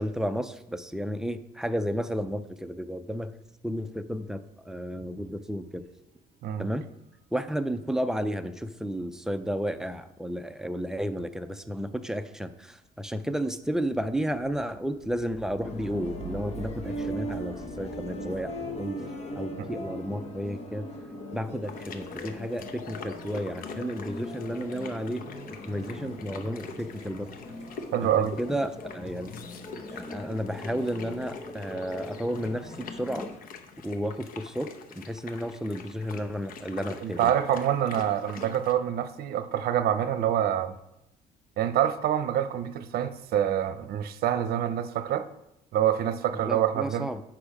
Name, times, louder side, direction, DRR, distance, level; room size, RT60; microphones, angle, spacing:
voice 1, 0.0-3.3 3.6-5.9 6.6-6.9 7.3-18.5 18.8-19.0 19.4-20.9 21.3-25.2 25.7-27.3 28.0-29.3 29.9-33.3 33.8-37.3 46.5-47.2, equal, 5° right, 8 dB, 0.6 m, -32 dB
sound 1, 4.1-5.4 5.7-20.7 21.5-22.1, right 4 dB, 40° right, 1.5 m, -50 dB
sound 2, 15.6-33.4, left 1 dB, 40° left, 1.5 m, -40 dB
sound 3, 21.6-38.7, left 5 dB, 55° left, 1.0 m, -45 dB
voice 2, 27.9-28.4 37.0-40.7 41.6-45.3 45.7-47.1, right 10 dB, 65° right, 11 dB, 0.7 m, -26 dB
8.5 x 6.0 x 4.9 m, 0.86 s
cardioid pair, 110°, 17 cm